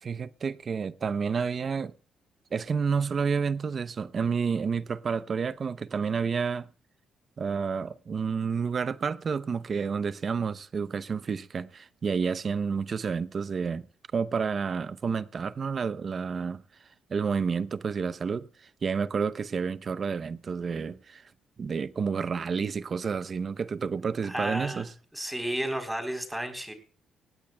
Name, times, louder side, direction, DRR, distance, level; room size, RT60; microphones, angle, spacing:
voice 1, 0.0-1.9 2.5-6.7 7.4-13.9 14.1-16.6 17.1-18.5 18.8-21.2 21.6-24.9, right 5 dB, 45° right, 0.7 m, -30 dB
voice 2, 24.2-24.9 25.1-26.7, right 1 dB, 5° right, 3.7 m, -32 dB
19.0 x 16.5 x 2.3 m
cardioid pair, 90°, 0 cm